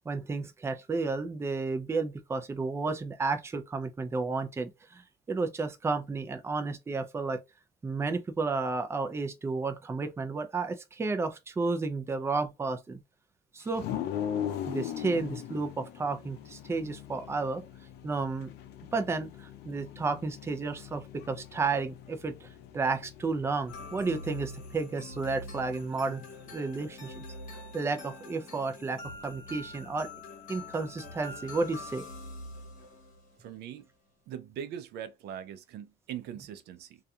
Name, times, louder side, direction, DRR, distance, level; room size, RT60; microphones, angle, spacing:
voice 1, 0.1-5.0 5.3-7.4 7.8-13.0 13.5-13.8 14.7-17.6 18.0-18.5 18.9-22.5 22.7-26.2 26.5-27.1 27.7-30.1 30.5-32.0, right 3 dB, 15° right, 0.4 m, -32 dB
sound 1, 13.7-26.5, left 10 dB, 75° left, 0.5 m, -41 dB
sound 2, 23.7-33.4, left 2 dB, 50° left, 1.0 m, -45 dB
voice 2, 33.4-33.9 34.3-37.0, right 9 dB, 75° right, 0.5 m, -41 dB
2.6 x 2.4 x 2.3 m
cardioid pair, 110°, 17 cm